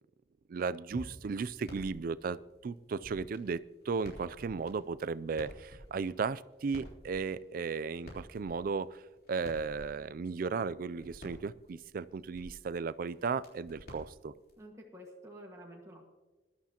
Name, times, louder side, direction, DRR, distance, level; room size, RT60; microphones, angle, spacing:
voice 1, 0.5-2.4 2.6-9.0 9.3-14.3, right 5 dB, 50° right, 17 dB, 0.4 m, -35 dB
sound 1, 0.9-4.9, equal, 85° right, 2.1 m, -54 dB
sound 2, 1.3-14.7, equal, 55° left, 3.6 m, -54 dB
voice 2, 14.6-16.0, equal, 15° right, -1 dB, 1.6 m, -50 dB
20.5 x 11.5 x 2.9 m, 1.2 s
head